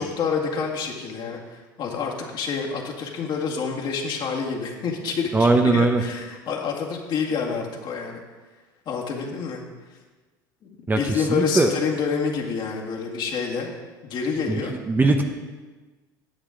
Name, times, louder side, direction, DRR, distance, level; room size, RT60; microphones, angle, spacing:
voice 1, 0.0-8.2 8.9-9.6 10.6-13.7 14.0-14.7, left 5 dB, 45° left, -1 dB, 2.0 m, -28 dB
voice 2, 5.3-6.0 10.9-11.7 14.5-14.6 14.9-15.2, right 3 dB, 15° right, 4 dB, 0.9 m, -20 dB
10.5 x 8.0 x 3.8 m, 1.3 s
hypercardioid pair, 85°, 11 cm